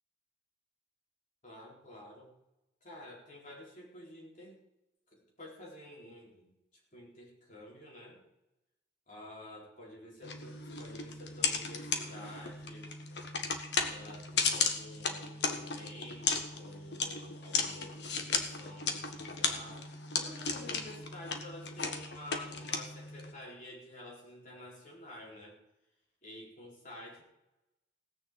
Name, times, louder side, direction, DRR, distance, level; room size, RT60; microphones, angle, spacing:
voice 1, 1.4-2.3 2.8-4.6 5.1-8.2 9.1-12.9 13.9-25.6 26.2-27.2, left 1 dB, 45° left, -3 dB, 4.4 m, -50 dB
sound 1, 10.2-23.3, left 5 dB, 70° left, 1.5 m, -35 dB
17.5 x 6.8 x 7.6 m, 0.91 s
head